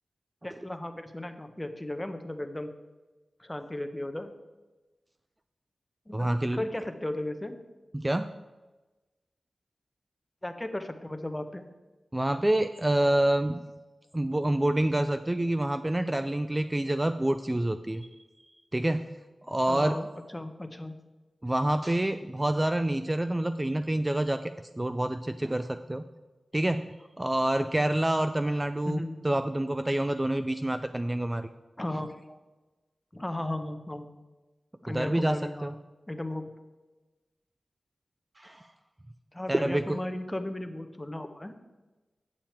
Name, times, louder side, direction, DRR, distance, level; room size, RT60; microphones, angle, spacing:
voice 1, 0.4-2.7 3.4-4.3 6.1-7.6 10.4-11.6 19.7-20.1 20.3-20.9 28.9-29.1 31.8-32.1 33.1-34.0 34.8-35.8 36.1-36.4 39.3-41.5, left 1 dB, 15° left, 8 dB, 0.8 m, -35 dB
voice 2, 6.1-6.6 7.9-8.3 12.1-13.6 14.1-18.1 18.7-19.0 19.5-20.0 21.4-26.0 26.5-26.9 27.2-31.5 34.9-35.7 38.4-38.7 39.5-40.0, right 1 dB, 20° right, 10 dB, 0.3 m, -27 dB
8.7 x 7.5 x 4.4 m, 1.2 s
wide cardioid pair, 90°, 0 cm